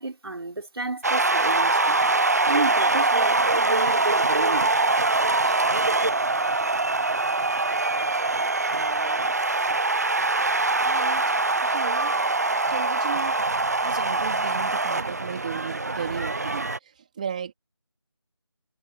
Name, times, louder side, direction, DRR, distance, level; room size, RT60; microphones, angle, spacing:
voice 1, 0.0-2.0 2.5-4.8 5.4-5.6, right 2 dB, 60° right, 4.5 m, -31 dB
sound 1, 1.0-16.8, right 3 dB, 35° right, 0.7 m, -23 dB
voice 2, 8.6-9.7 10.8-11.2 11.6-12.2 12.7-13.4 13.8-17.5, right 7 dB, 15° right, 3.9 m, -35 dB
figure-of-eight pair, 175°, 14 cm